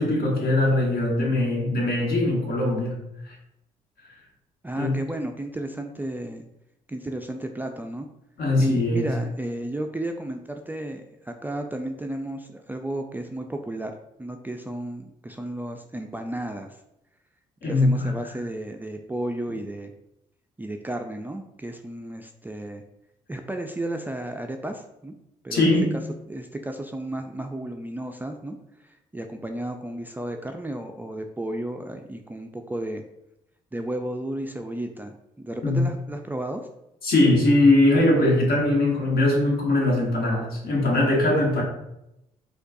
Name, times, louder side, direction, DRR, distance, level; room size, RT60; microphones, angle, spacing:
voice 1, 0.0-3.0 3.2-3.3 4.8-5.0 8.4-9.1 17.6-18.1 25.5-25.9 35.6-35.8 37.0-41.6, left 2 dB, 55° left, -2 dB, 1.3 m, -21 dB
voice 2, 4.6-6.5 6.9-8.1 8.6-13.9 14.2-16.8 17.6-19.9 20.6-22.8 23.3-25.1 25.4-25.7 26.3-33.0 33.7-36.7, right 1 dB, 10° right, 4 dB, 0.3 m, -33 dB
4.3 x 2.3 x 2.6 m, 0.84 s
hypercardioid pair, 45°, 18 cm